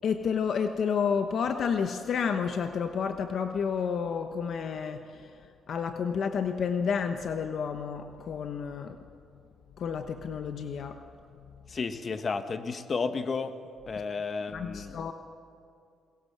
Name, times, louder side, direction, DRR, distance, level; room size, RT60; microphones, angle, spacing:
voice 1, 0.0-5.3 5.7-9.0 9.8-11.0 11.4-11.7 14.5-15.1, left 6 dB, 60° left, 6 dB, 1.1 m, -30 dB
voice 2, 11.7-13.5 13.9-15.0, left 4 dB, 40° left, 8 dB, 1.6 m, -32 dB
22.0 x 21.0 x 7.5 m, 2.5 s
cardioid pair, 90°, 0 cm